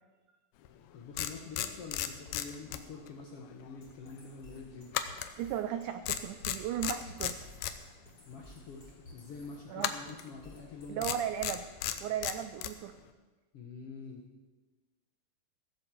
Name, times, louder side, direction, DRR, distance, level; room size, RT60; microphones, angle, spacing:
sound 1, 0.7-0.8 1.2-3.2 3.5-3.7 4.9-5.8 6.0-7.8 9.8-10.3 11.0-12.8, left 12 dB, 85° left, 2.7 m, -35 dB
voice 1, 0.9-4.9 8.2-11.1 13.5-14.2, left 4 dB, 65° left, 1 dB, 1.5 m, -46 dB
sound 2, 3.8-11.8, left 1 dB, 30° left, 3.4 m, -55 dB
voice 2, 5.4-7.4 9.7-10.0 10.9-11.6 12.0-13.0, right 10 dB, 85° right, 10 dB, 1.7 m, -36 dB
16.5 x 7.9 x 7.6 m, 1.3 s
omnidirectional pair, 4.2 m